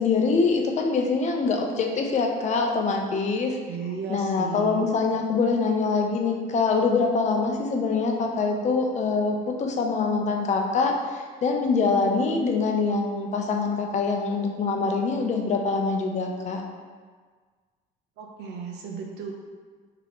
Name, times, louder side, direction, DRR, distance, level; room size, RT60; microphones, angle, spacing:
voice 1, 0.0-3.6 4.1-16.6, left 4 dB, 45° left, 2 dB, 0.6 m, -24 dB
voice 2, 3.7-4.9 18.2-19.3, right 5 dB, 85° right, 1 dB, 0.6 m, -35 dB
3.4 x 2.8 x 3.7 m, 1.5 s
cardioid pair, 110°, 17 cm